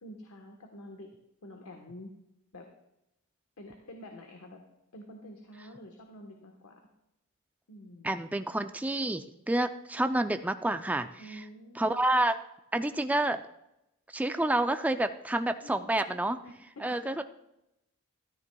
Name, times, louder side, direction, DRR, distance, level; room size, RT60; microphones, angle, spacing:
voice 1, 0.0-1.1 1.4-2.1 2.5-2.7 3.6-4.6 4.9-6.8 7.7-8.1 11.2-12.0 15.6-17.2, left 1 dB, 80° left, 2 dB, 1.2 m, -48 dB
voice 2, 8.0-11.4 11.8-12.4 12.7-13.4 14.1-16.4 16.8-17.2, right 1 dB, 5° right, 8 dB, 0.4 m, -29 dB
13.5 x 12.5 x 2.3 m, 0.86 s
head